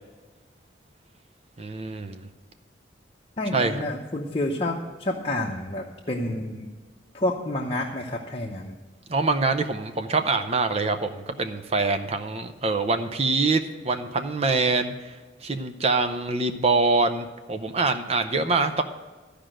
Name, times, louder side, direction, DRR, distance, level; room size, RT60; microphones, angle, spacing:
voice 1, 1.6-2.2 3.5-3.8 9.1-18.8, right 3 dB, 35° right, 8 dB, 0.6 m, -25 dB
voice 2, 3.4-6.7 7.1-8.8, left 1 dB, 30° left, -1 dB, 0.8 m, -29 dB
13.0 x 5.1 x 7.7 m, 1.3 s
head